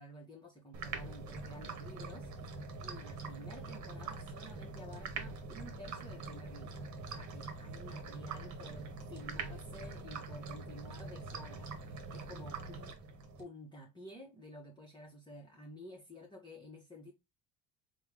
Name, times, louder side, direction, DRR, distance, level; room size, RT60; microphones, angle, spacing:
voice 1, 0.0-2.5 2.8-13.0 13.4-17.1, equal, 15° left, 1.0 m, -51 dB
sound 1, 0.7-13.4, right 3 dB, 60° right, 1.0 m, -44 dB
3.4 x 2.2 x 3.3 m
supercardioid pair, 90°, 33 cm